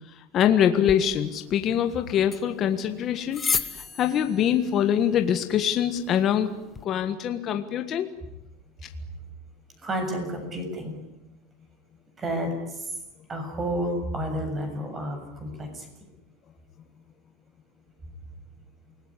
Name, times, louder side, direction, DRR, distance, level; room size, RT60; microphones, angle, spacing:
voice 1, 0.3-3.7 4.0-6.5 6.8-8.1, left 9 dB, 30° left, 7 dB, 1.6 m, -24 dB
sound 1, 0.8-6.8, left 5 dB, 15° left, 1.5 m, -35 dB
voice 2, 9.8-11.0 12.2-12.9 13.3-15.9, equal, 20° right, 6 dB, 7.3 m, -31 dB
28.5 x 20.0 x 10.0 m, 0.91 s
supercardioid pair, 155°, 0 cm